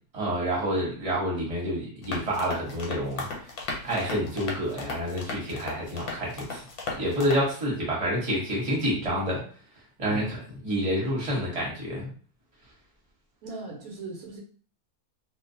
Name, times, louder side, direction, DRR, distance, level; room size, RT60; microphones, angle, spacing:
voice 1, 0.1-3.3 3.8-6.6 7.0-9.4 10.0-10.4 10.6-12.1, equal, 25° right, -4 dB, 1.0 m, -28 dB
sound 1, 2.0-7.5, left 3 dB, 85° left, 1.2 m, -36 dB
voice 2, 13.4-14.4, right 2 dB, 80° right, 0 dB, 1.1 m, -38 dB
2.5 x 2.3 x 2.6 m, 0.42 s
omnidirectional pair, 1.6 m